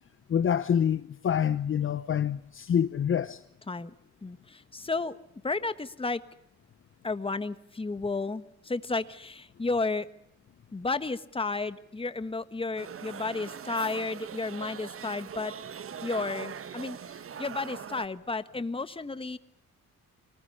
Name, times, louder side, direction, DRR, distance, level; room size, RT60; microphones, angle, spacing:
voice 1, 0.3-3.4, left 8 dB, 45° left, 0.8 m, -26 dB
voice 2, 4.2-5.2 5.4-6.2 7.0-10.1 10.7-15.5 16.0-19.4, left 3 dB, 20° left, 1.4 m, -32 dB
sound 1, 12.8-18.1, right 8 dB, 45° right, 1.3 m, -41 dB
25.5 x 20.0 x 6.8 m
cardioid pair, 90°, 30 cm